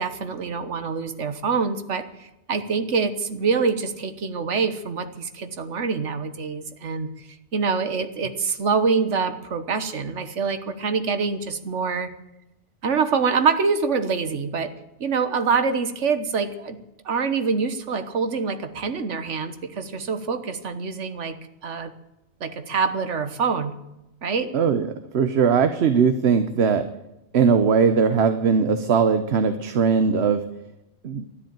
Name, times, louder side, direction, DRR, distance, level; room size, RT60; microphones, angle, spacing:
voice 1, 0.0-7.1 7.5-12.1 12.8-14.7 15.0-16.8 17.0-21.3 21.6-21.9 22.4-23.7 24.2-24.5, right 5 dB, 85° right, 10 dB, 1.5 m, -25 dB
voice 2, 24.5-24.9 25.1-26.8 27.3-30.4 31.0-31.2, right 6 dB, 65° right, 9 dB, 1.1 m, -19 dB
12.5 x 10.5 x 8.9 m, 0.91 s
omnidirectional pair, 1.2 m